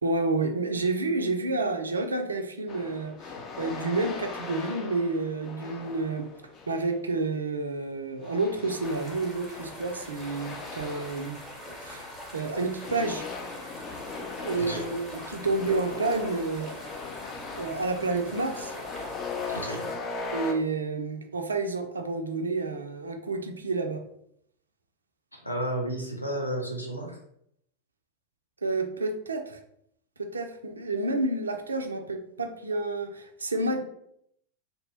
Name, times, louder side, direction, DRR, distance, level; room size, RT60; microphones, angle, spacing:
voice 1, 0.0-6.3 6.7-11.4 11.8-12.0 12.3-13.3 14.4-16.8 17.6-18.7 20.3-24.0 28.6-29.6 30.2-33.8, right 3 dB, 75° right, 5 dB, 0.3 m, -29 dB
sound 1, 2.7-6.9 8.2-12.4 12.8-20.5, left 4 dB, 30° left, 0.5 m, -39 dB
sound 2, 8.8-20.0, equal, 10° left, 0.9 m, -43 dB
voice 2, 14.6-14.9 19.5-19.9 25.3-27.2, right 1 dB, 85° left, -1 dB, 0.6 m, -32 dB
2.7 x 2.0 x 3.0 m, 0.71 s
figure-of-eight pair, 90°, 0 cm